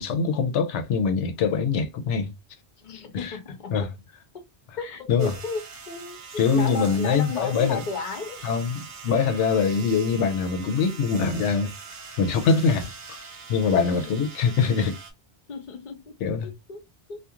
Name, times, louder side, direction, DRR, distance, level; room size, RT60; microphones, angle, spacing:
voice 1, 0.0-2.3 3.1-3.3 3.7-3.9 5.1-5.3 6.4-7.8 8.4-11.7 12.2-12.9 13.5-15.0 16.2-16.5, left 5 dB, 85° left, 0.9 m, -23 dB
voice 2, 2.8-3.9 4.3-4.4 4.8-6.2 6.5-8.5 13.9-14.1 15.5-16.2 16.4-16.8 17.1-17.2, left 5 dB, 45° left, 0.8 m, -34 dB
sound 1, 5.2-15.1, right 5 dB, 60° right, 0.9 m, -42 dB
2.4 x 2.3 x 2.8 m
omnidirectional pair, 1.2 m